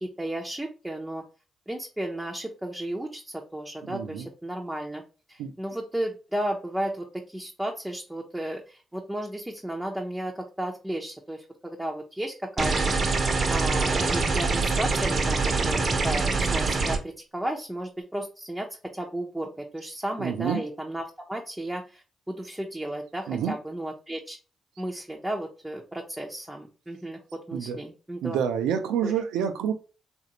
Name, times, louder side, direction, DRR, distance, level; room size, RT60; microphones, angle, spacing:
voice 1, 0.0-1.2 1.7-5.0 5.3-18.7 18.9-24.4 24.8-28.4 29.0-29.1, right 1 dB, 10° right, 0 dB, 0.7 m, -34 dB
voice 2, 3.9-4.3 5.4-5.5 20.2-20.6 23.3-23.5 27.5-27.8 28.2-29.7, right 8 dB, 80° right, 7 dB, 0.4 m, -28 dB
sound 1, 12.6-17.0, right 3 dB, 50° right, 0.7 m, -24 dB
3.1 x 2.5 x 2.9 m, 0.34 s
hypercardioid pair, 45°, 0 cm